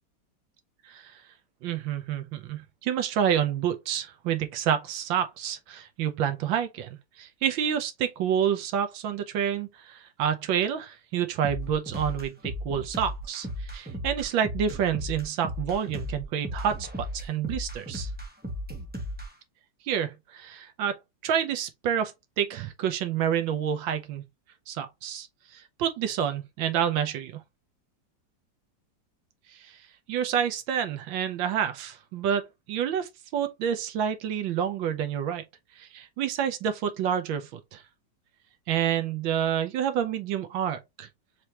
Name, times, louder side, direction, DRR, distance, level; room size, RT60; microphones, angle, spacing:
voice 1, 1.6-18.1 19.9-21.0 21.2-24.2 24.7-25.3 25.5-27.4 29.6-29.8 30.1-35.4 35.8-37.8 38.7-41.1, right 9 dB, 90° right, 1.6 m, -28 dB
sound 1, 11.4-19.3, equal, 10° right, 0.4 m, -35 dB
4.6 x 3.4 x 2.9 m
omnidirectional pair, 2.0 m